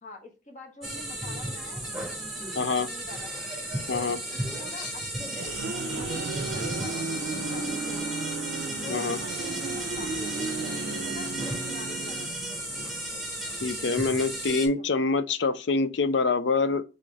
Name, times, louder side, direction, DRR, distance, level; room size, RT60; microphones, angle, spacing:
voice 1, 0.0-1.9 2.8-3.3 4.3-5.6 6.0-8.1 8.8-10.5 10.8-12.4 13.8-14.1 14.5-15.0, left 2 dB, 40° left, 1.2 m, -45 dB
sound 1, 0.8-14.7, right 1 dB, ahead, 1.3 m, -34 dB
voice 2, 2.6-2.9 3.9-4.2 4.8-4.9 8.9-9.2 13.6-16.8, left 4 dB, 65° left, 0.5 m, -25 dB
sound 2, 5.0-12.7, right 3 dB, 90° right, 0.5 m, -35 dB
sound 3, 5.5-14.5, left 4 dB, 85° left, 1.7 m, -48 dB
3.8 x 3.7 x 3.3 m
head